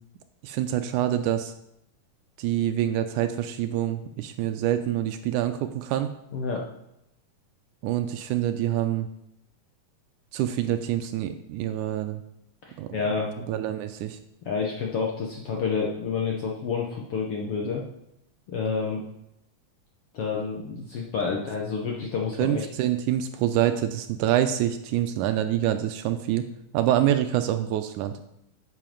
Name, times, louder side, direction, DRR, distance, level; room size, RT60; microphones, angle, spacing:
voice 1, 0.4-1.5 2.4-6.1 7.8-9.1 10.3-12.2 12.8-12.9 13.5-14.2 22.4-26.4 26.7-28.1, right 12 dB, 80° right, 8 dB, 1.9 m, -26 dB
voice 2, 6.3-6.6 12.7-13.3 14.4-17.8 18.5-19.0 20.1-22.7, left 5 dB, 65° left, -1 dB, 1.5 m, -29 dB
7.7 x 7.6 x 5.2 m, 0.80 s
omnidirectional pair, 3.8 m